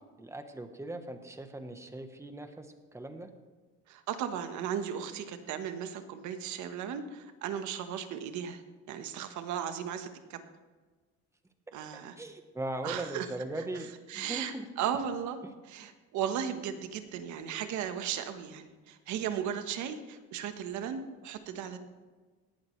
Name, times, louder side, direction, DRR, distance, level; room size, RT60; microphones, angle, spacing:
voice 1, 0.2-3.3 12.2-14.7, right 2 dB, 10° right, 7 dB, 1.1 m, -39 dB
voice 2, 3.9-8.6 8.9-10.4 11.7-12.1 12.8-13.3 13.5-13.6 14.1-15.4 15.7-21.8, right 8 dB, 75° right, 8 dB, 1.3 m, -36 dB
18.0 x 12.0 x 3.2 m, 1.4 s
cardioid pair, 140°, 29 cm